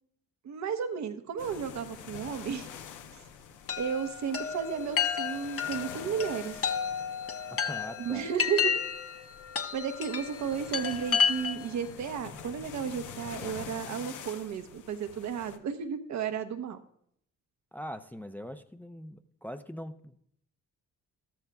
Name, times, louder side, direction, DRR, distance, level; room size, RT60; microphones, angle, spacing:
voice 1, 0.4-2.7 3.8-6.6 8.0-8.7 9.7-16.8, right 7 dB, 70° right, 1.0 m, -33 dB
sound 1, 1.4-15.6, left 7 dB, 80° left, 0.9 m, -47 dB
Chime, 3.7-11.8, left 7 dB, 50° left, 1.0 m, -32 dB
voice 2, 7.5-8.3 17.7-20.2, equal, 5° left, 0.6 m, -42 dB
13.5 x 13.0 x 2.3 m
cardioid pair, 90°, 30 cm